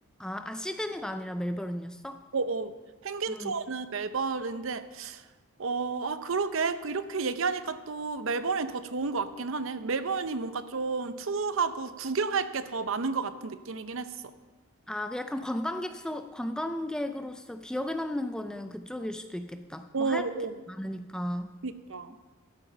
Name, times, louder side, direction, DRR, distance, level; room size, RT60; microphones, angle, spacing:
voice 1, 0.2-2.2 3.3-3.6 14.9-20.3 20.7-21.5, left 1 dB, 5° left, 8 dB, 0.3 m, -34 dB
voice 2, 2.3-2.7 3.0-5.2 5.6-14.3 19.9-20.5 21.6-22.2, right 4 dB, 60° right, 12 dB, 0.6 m, -31 dB
12.0 x 8.3 x 5.5 m, 1.2 s
head